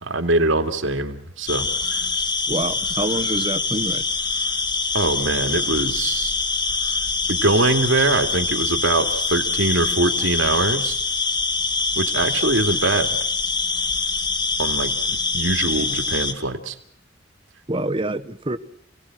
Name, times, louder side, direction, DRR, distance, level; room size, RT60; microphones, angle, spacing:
voice 1, 0.0-2.0 4.9-6.3 7.3-11.0 12.0-13.1 14.6-16.7, right 2 dB, 85° right, 6 dB, 2.7 m, -23 dB
sound 1, 1.5-16.3, left 4 dB, 25° left, 1.9 m, -24 dB
voice 2, 2.5-4.0 17.7-18.6, right 1 dB, 25° right, 11 dB, 1.2 m, -26 dB
29.0 x 18.0 x 6.3 m, 0.69 s
head